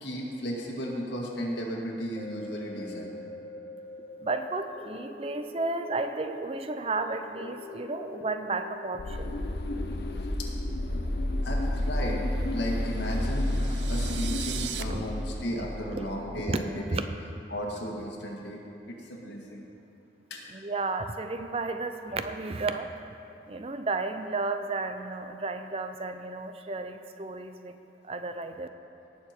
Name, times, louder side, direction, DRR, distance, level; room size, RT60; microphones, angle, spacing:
voice 1, 0.0-3.1 11.4-12.2 12.5-13.5 13.9-17.0 17.5-18.6 18.9-19.6 20.3-20.4, equal, 85° left, -2 dB, 2.0 m, -34 dB
sound 1, 2.2-12.5 13.0-13.1, left 2 dB, 40° left, 1.5 m, -45 dB
voice 2, 4.2-9.3 14.9-15.0 15.9-16.1 16.5-16.6 16.9-17.0 20.5-22.9 23.5-27.7 28.0-28.7, right 3 dB, 35° right, 8 dB, 0.5 m, -33 dB
sound 2, 9.0-16.4, left 1 dB, 65° left, 0.7 m, -31 dB
sound 3, 12.9-14.8, right 11 dB, 90° right, 0.6 m, -39 dB
18.0 x 7.0 x 4.4 m, 2.8 s
head